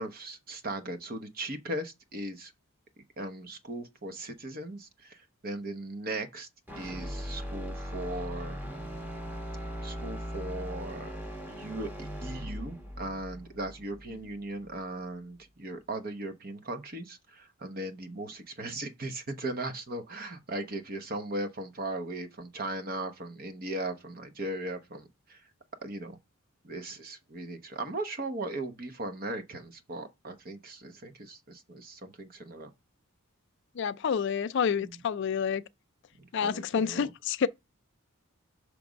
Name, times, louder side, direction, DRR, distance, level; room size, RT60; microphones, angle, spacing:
voice 1, 0.0-2.5 3.2-6.5 6.8-8.6 9.8-11.1 11.5-25.4 25.8-26.2 26.6-32.7 34.7-34.9 36.2-37.1, right 2 dB, 45° right, 0.9 m, -38 dB
sound 1, 6.7-14.8, equal, 10° right, 1.0 m, -39 dB
voice 2, 33.8-35.6 36.3-37.5, left 7 dB, 55° left, 0.4 m, -28 dB
6.1 x 3.4 x 5.1 m
head